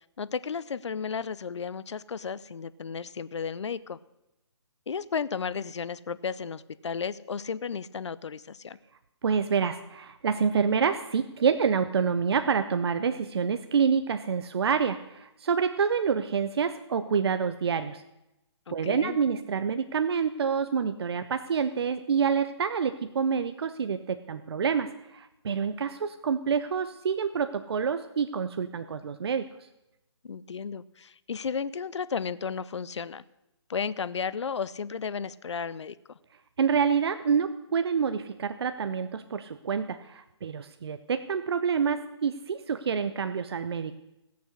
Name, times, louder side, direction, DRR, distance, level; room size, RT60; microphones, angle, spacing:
voice 1, 0.2-4.0 4.9-8.8 18.7-19.2 30.2-33.2 33.7-36.0, left 6 dB, 70° left, 17 dB, 0.6 m, -33 dB
voice 2, 9.2-18.0 18.7-29.5 36.6-43.9, right 6 dB, 55° right, 10 dB, 0.6 m, -27 dB
16.5 x 6.8 x 6.4 m, 0.91 s
hypercardioid pair, 155°, 16 cm